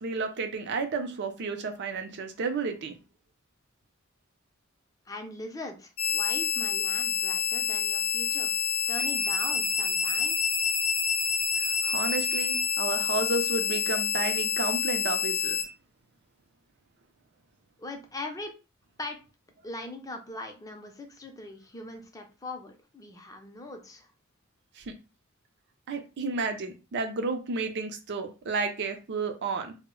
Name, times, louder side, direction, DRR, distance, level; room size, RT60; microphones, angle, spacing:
voice 1, 0.0-2.9 11.6-15.6 24.8-24.9 25.9-29.8, right 4 dB, 55° right, 0.5 m, -31 dB
voice 2, 5.1-8.5 8.9-10.5 17.8-18.5 19.0-19.2 19.6-24.1, left 2 dB, 15° left, 0.4 m, -40 dB
sound 1, 6.0-15.6, left 7 dB, 85° left, 0.5 m, -28 dB
2.0 x 2.0 x 3.6 m
head